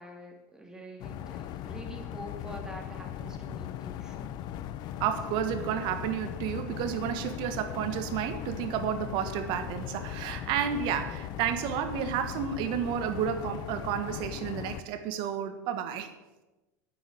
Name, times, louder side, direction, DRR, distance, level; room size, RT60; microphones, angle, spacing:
voice 1, 0.0-4.2, right 1 dB, 5° right, 1 dB, 2.7 m, -45 dB
sound 1, 1.0-14.8, left 11 dB, 50° left, 0.7 m, -39 dB
voice 2, 5.0-16.1, right 9 dB, 60° right, 9 dB, 1.4 m, -31 dB
9.3 x 8.1 x 7.7 m, 1.1 s
hypercardioid pair, 95°, 9 cm